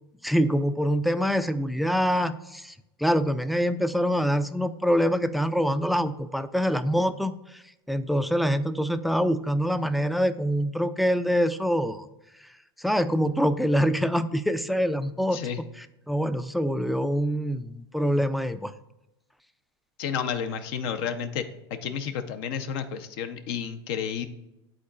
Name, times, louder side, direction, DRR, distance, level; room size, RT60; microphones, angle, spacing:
voice 1, 0.2-2.7 3.0-7.6 7.9-12.1 12.8-15.4 16.1-18.7, equal, ahead, 12 dB, 0.3 m, -25 dB
voice 2, 20.0-21.5 21.8-24.3, left 7 dB, 60° left, 8 dB, 0.7 m, -31 dB
11.0 x 3.8 x 2.4 m, 0.92 s
hypercardioid pair, 95°, 14 cm